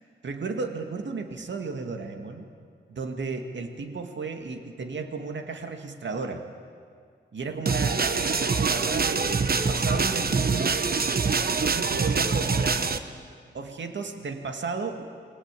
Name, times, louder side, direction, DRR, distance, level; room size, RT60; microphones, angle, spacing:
voice 1, 0.2-2.5 2.9-6.5 7.3-10.8 11.5-12.9 13.5-15.0, right 4 dB, 75° right, 5 dB, 2.1 m, -34 dB
sound 1, 7.7-13.0, right 4 dB, 50° right, 1.2 m, -25 dB
28.5 x 22.0 x 8.4 m, 2.2 s
wide cardioid pair, 115°, 19 cm